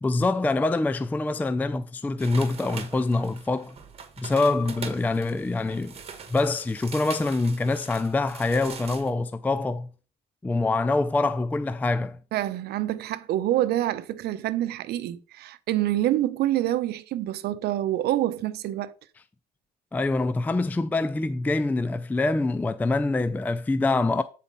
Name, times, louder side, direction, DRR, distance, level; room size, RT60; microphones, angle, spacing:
voice 1, 0.0-3.8 4.2-5.9 6.3-9.9 10.4-12.2 19.9-24.2, left 3 dB, 10° left, 0.4 m, -25 dB
sound 1, 2.2-9.1, right 6 dB, 35° right, 1.5 m, -42 dB
voice 2, 12.3-18.9, right 13 dB, 75° right, 0.7 m, -26 dB
8.3 x 4.2 x 5.3 m
cardioid pair, 110°, 17 cm